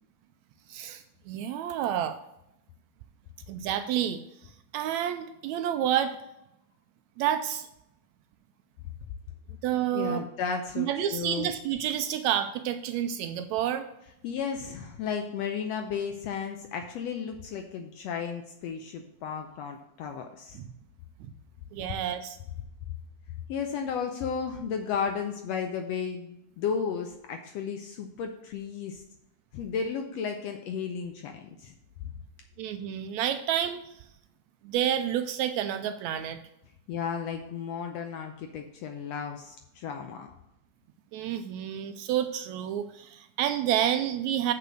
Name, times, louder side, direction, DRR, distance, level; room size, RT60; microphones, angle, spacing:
voice 1, 0.7-2.2 3.5-4.2 4.7-6.2 7.2-7.7 9.6-10.2 10.8-13.9 20.6-20.7 21.7-22.4 32.6-33.9 34.6-36.4 41.1-44.5, right 10 dB, 80° right, 9 dB, 1.7 m, -29 dB
voice 2, 9.9-11.5 14.2-20.6 23.5-29.0 29.5-31.7 36.9-40.3, left 6 dB, 75° left, 4 dB, 1.5 m, -34 dB
6.8 x 5.7 x 6.3 m, 0.82 s
omnidirectional pair, 3.5 m